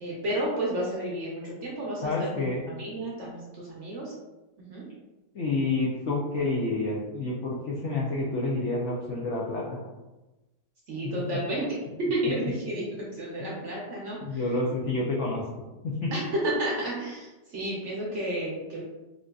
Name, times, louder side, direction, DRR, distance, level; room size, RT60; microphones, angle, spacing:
voice 1, 0.0-4.1 4.7-4.8 10.9-11.7 12.0-14.2 16.1-18.8, right 1 dB, 60° right, -5 dB, 0.8 m, -31 dB
voice 2, 2.0-2.6 5.3-9.8 13.4-13.5 14.2-15.4 15.8-16.1, left 2 dB, 80° left, -4 dB, 0.6 m, -29 dB
3.7 x 2.5 x 2.3 m, 1.1 s
omnidirectional pair, 1.9 m